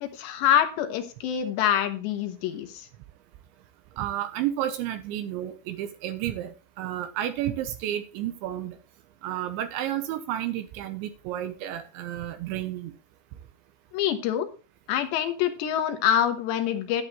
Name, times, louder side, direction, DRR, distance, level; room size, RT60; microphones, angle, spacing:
voice 1, 0.0-2.9 13.9-14.5 14.9-17.0, left 10 dB, 70° left, 7 dB, 3.1 m, -25 dB
voice 2, 4.0-8.8 9.2-12.9, right 12 dB, 80° right, 9 dB, 3.0 m, -31 dB
11.0 x 10.5 x 3.1 m, 0.35 s
omnidirectional pair, 5.8 m